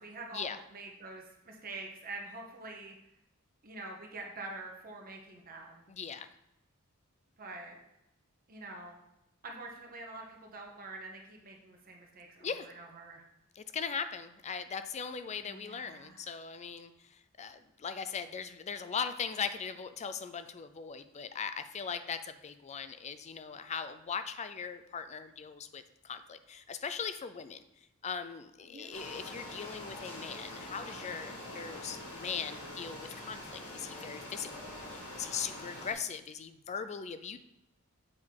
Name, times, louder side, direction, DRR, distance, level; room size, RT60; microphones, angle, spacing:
voice 1, 0.0-3.0 3.6-5.9 7.4-7.8 8.5-9.0 9.4-13.2 15.4-16.2 28.6-29.0, right 2 dB, 40° right, 1 dB, 1.0 m, -46 dB
voice 2, 5.9-6.3 12.4-12.7 13.6-27.6 28.0-37.4, left 6 dB, 30° left, 11 dB, 0.4 m, -39 dB
sound 1, 28.9-35.9, left 1 dB, 65° left, 1.7 m, -45 dB
7.5 x 3.8 x 4.7 m, 0.86 s
head